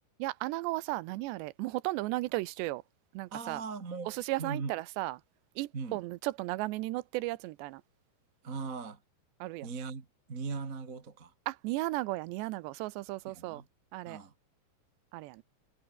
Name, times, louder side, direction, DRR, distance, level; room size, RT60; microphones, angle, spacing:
voice 1, 0.2-2.8 3.1-3.6 4.1-5.2 5.6-7.8 9.4-9.7 11.5-13.6 13.9-14.2 15.1-15.4, right 19 dB, 90° right, 3.0 m, -35 dB
voice 2, 3.3-4.1 4.4-4.7 5.7-6.0 8.4-9.0 9.6-11.3 13.3-13.6 14.0-14.3, right 4 dB, 30° right, 1.7 m, -39 dB
omnidirectional pair, 5.0 m